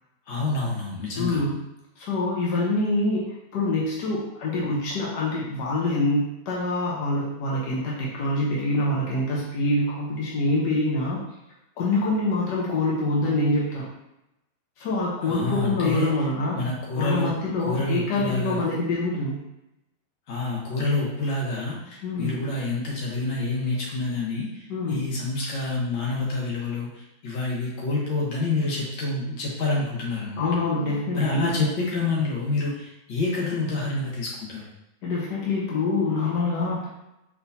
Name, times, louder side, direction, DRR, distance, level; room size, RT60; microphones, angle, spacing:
voice 1, 0.3-1.4 15.2-16.1 16.5-18.8 20.3-30.5 31.1-34.6, left 2 dB, 85° left, -5 dB, 1.9 m, -28 dB
voice 2, 1.2-1.5 2.0-11.2 11.8-13.9 14.8-16.6 17.0-19.4 22.0-22.3 24.7-25.1 30.4-31.7 35.0-36.9, left 2 dB, 65° left, -5 dB, 1.5 m, -25 dB
4.5 x 3.9 x 2.7 m, 0.88 s
omnidirectional pair, 2.0 m